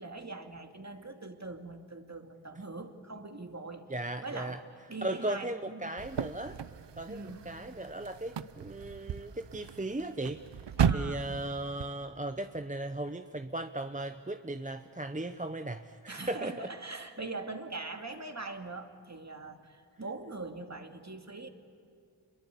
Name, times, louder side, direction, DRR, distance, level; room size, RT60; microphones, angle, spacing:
voice 1, 0.0-3.9 4.2-4.6 4.9-6.0 7.1-7.5 10.8-11.3 16.1-21.5, right 3 dB, 40° right, 5 dB, 2.4 m, -42 dB
voice 2, 3.9-4.6 5.0-6.6 7.0-10.4 10.9-16.7, right 1 dB, 20° right, 8 dB, 0.9 m, -37 dB
sound 1, 6.0-11.9, right 7 dB, 80° right, 0.7 m, -35 dB
27.0 x 22.5 x 8.4 m, 2.5 s
wide cardioid pair, 45°, 42 cm